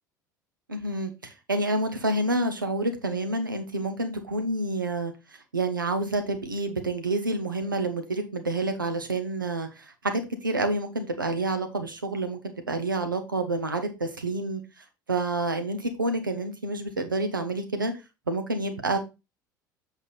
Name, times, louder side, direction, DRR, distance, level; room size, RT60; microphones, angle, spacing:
voice 1, 0.7-5.1 5.5-14.6 15.1-17.9 18.3-19.0, right 2 dB, 85° right, 6 dB, 1.2 m, -28 dB
7.9 x 4.7 x 4.1 m, 0.26 s
figure-of-eight pair, 65°, 11 cm